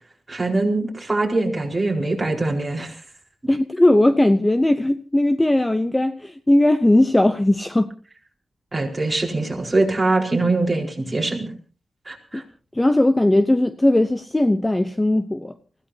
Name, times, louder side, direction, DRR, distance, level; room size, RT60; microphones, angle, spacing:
voice 1, 0.3-3.0 8.7-11.5 12.1-12.4, right 2 dB, 15° right, 4.4 m, -23 dB
voice 2, 3.5-7.9 12.3-12.4 12.7-15.5, left 1 dB, 10° left, 0.7 m, -18 dB
29.0 x 16.5 x 2.8 m
wide cardioid pair, 165°, 0 cm